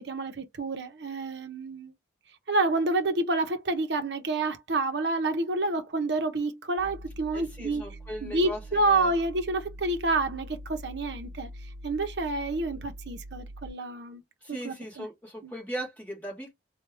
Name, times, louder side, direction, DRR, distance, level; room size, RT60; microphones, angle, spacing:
voice 1, 0.0-1.9 2.5-7.8 8.2-11.5 11.8-14.2 14.5-15.1 15.4-15.5, right 2 dB, 60° right, 0.7 m, -28 dB
sound 1, 6.8-13.7, equal, 60° left, 0.5 m, -43 dB
voice 2, 7.3-9.1 14.4-16.5, equal, 10° left, 1.4 m, -38 dB
3.3 x 2.3 x 3.3 m
head